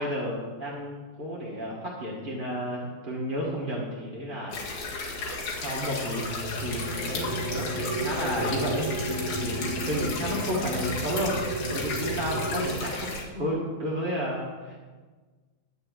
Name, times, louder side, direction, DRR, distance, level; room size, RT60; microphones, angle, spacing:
voice 1, 0.0-4.6 5.6-6.3 6.6-7.3 7.5-8.9 9.4-11.3 11.7-14.8, equal, 35° right, -5 dB, 0.8 m, -32 dB
sound 1, 4.5-13.2, left 3 dB, 75° left, 3.2 m, -34 dB
sound 2, 6.3-12.7, right 1 dB, 15° left, 3.2 m, -33 dB
11.0 x 5.6 x 7.7 m, 1.4 s
omnidirectional pair, 3.5 m